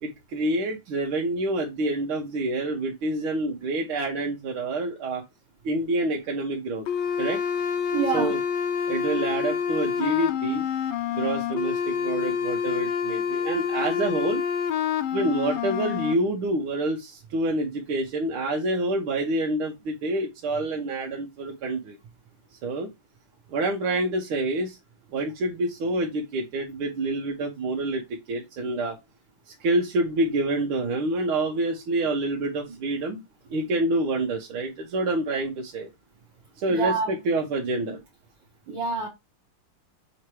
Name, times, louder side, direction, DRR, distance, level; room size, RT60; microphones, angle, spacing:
voice 1, 0.0-5.2 5.6-6.9 7.2-7.4 8.1-8.4 8.9-10.7 11.1-14.4 15.1-22.0 22.6-22.9 23.5-24.8 25.1-29.0 29.5-33.2 33.5-35.9 36.6-38.0, right 2 dB, 80° right, 2.0 m, -27 dB
sound 1, 6.9-16.1, left 7 dB, 75° left, 1.5 m, -27 dB
voice 2, 7.9-8.3 36.7-37.2 38.7-39.1, right 5 dB, 65° right, 1.9 m, -27 dB
7.2 x 3.0 x 4.7 m
omnidirectional pair, 2.3 m